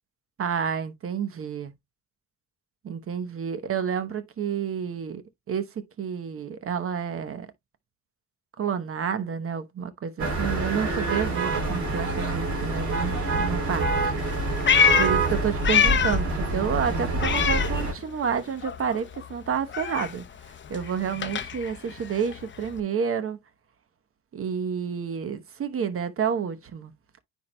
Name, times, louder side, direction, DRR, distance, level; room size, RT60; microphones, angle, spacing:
voice 1, 0.4-1.7 2.8-5.2 5.5-7.5 8.6-14.1 15.0-20.2 20.7-23.4 24.3-26.9, right 7 dB, 45° right, 1.0 m, -29 dB
sound 1, 10.2-17.9, right 3 dB, 70° right, 3.5 m, -26 dB
Meow, 14.2-16.3 16.6-18.4 18.6-22.8, left 7 dB, 40° left, 0.6 m, -26 dB
9.3 x 4.5 x 2.2 m
cardioid pair, 90°, 30 cm